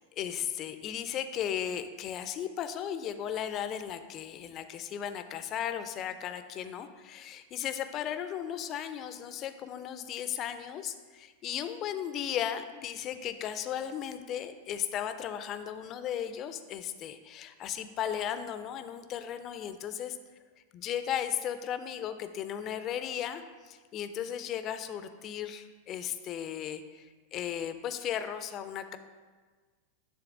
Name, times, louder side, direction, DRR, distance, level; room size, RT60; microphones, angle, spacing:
voice 1, 0.1-20.2 20.7-29.0, left 9 dB, 35° left, 10 dB, 0.4 m, -36 dB
9.7 x 3.4 x 3.6 m, 1.4 s
figure-of-eight pair, 90°, 0 cm